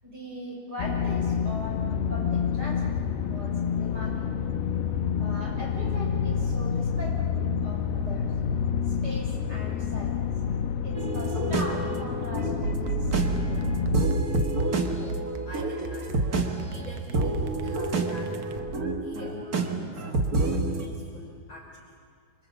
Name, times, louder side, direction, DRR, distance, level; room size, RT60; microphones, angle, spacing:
voice 1, 0.0-4.4 5.2-8.2 9.0-10.2 10.8-13.6, equal, 25° right, -2 dB, 7.1 m, -40 dB
sound 1, 0.8-14.1, left 7 dB, 80° left, 2.9 m, -28 dB
sound 2, 10.9-20.9, right 3 dB, 55° right, 1.0 m, -29 dB
sound 3, 12.6-19.0, right 5 dB, 75° right, 1.7 m, -34 dB
voice 2, 14.9-18.4 19.0-19.5 19.7-21.9, left 2 dB, 45° left, -1 dB, 2.8 m, -46 dB
28.5 x 25.0 x 7.1 m, 2.2 s
omnidirectional pair, 4.7 m